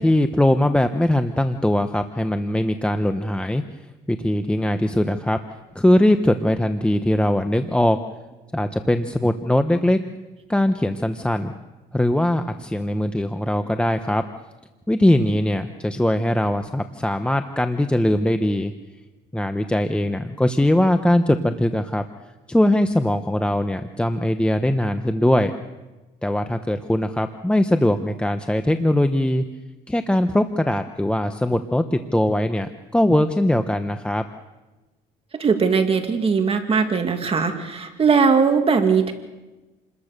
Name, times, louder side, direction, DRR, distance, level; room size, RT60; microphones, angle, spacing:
voice 1, 0.0-3.6 4.1-5.4 5.7-8.0 8.5-10.0 10.5-11.5 11.9-14.2 14.9-18.7 19.3-22.0 22.5-25.5 26.2-29.4 29.9-34.2, left 1 dB, 5° left, 7 dB, 1.0 m, -21 dB
voice 2, 35.4-39.1, right 5 dB, 35° right, 5 dB, 2.3 m, -19 dB
29.0 x 21.0 x 6.7 m, 1.1 s
cardioid pair, 110°, 17 cm